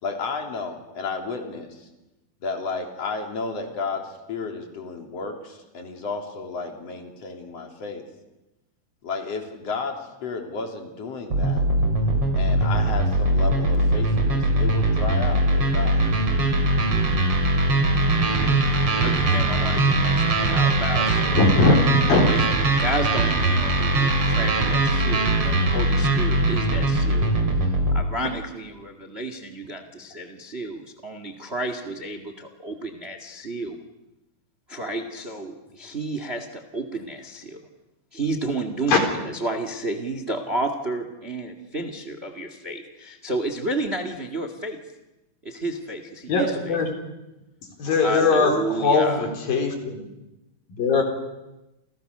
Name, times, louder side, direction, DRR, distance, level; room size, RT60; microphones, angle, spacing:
voice 1, 0.0-1.9 2.4-8.0 9.0-11.6 12.4-16.0 25.4-25.5 50.9-51.0, left 4 dB, 45° left, 3 dB, 4.1 m, -32 dB
sound 1, 11.3-28.0, right 2 dB, 40° right, 4.1 m, -21 dB
voice 2, 18.1-18.6 18.9-21.5 22.1-27.3 27.9-33.8 34.7-37.6 38.1-44.8 45.4-46.8 48.0-49.3, right 2 dB, 25° right, 8 dB, 1.5 m, -31 dB
voice 3, 21.4-21.8 22.1-22.2 38.9-39.0 46.3-46.9 47.8-50.1 50.8-51.0, left 4 dB, 75° left, 4 dB, 5.8 m, -20 dB
30.0 x 28.0 x 6.8 m, 0.97 s
omnidirectional pair, 4.2 m